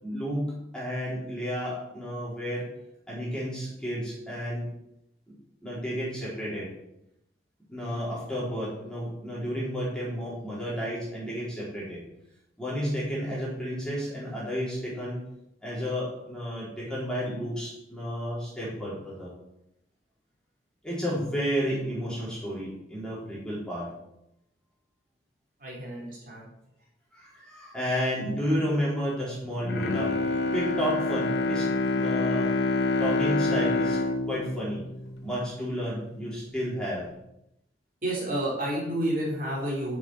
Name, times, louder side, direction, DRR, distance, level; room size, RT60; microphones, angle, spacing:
voice 1, 0.0-2.7 3.1-4.7 5.6-6.7 7.7-12.0 12.6-15.2 15.6-19.3 20.8-23.9 27.1-30.2 30.5-31.7 31.9-32.5 33.0-34.0 34.3-34.9 35.2-37.1, equal, 5° left, -7 dB, 4.1 m, -31 dB
voice 2, 25.6-26.5 38.0-40.0, right 1 dB, 50° right, -4 dB, 3.7 m, -30 dB
Bowed string instrument, 29.6-35.8 36.3-36.4, left 3 dB, 75° left, 1.0 m, -27 dB
7.2 x 7.1 x 7.6 m, 0.83 s
head